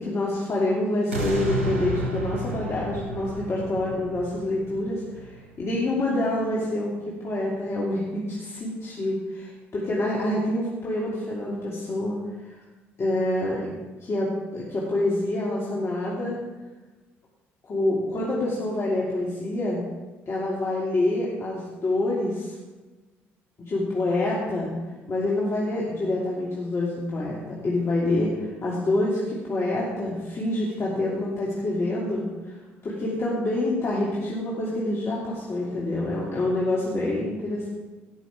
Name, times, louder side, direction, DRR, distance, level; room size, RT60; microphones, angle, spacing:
voice 1, 0.0-6.9 7.2-12.6 13.0-13.7 14.0-16.4 17.6-19.8 20.3-22.6 23.6-24.7 25.1-32.5 32.8-37.7, left 1 dB, 40° left, -5 dB, 2.9 m, -27 dB
sound 1, 1.1-6.2 6.7-6.8, right 2 dB, 90° right, 1.4 m, -32 dB
18.0 x 6.3 x 4.9 m, 1.2 s
hypercardioid pair, 55°, 7 cm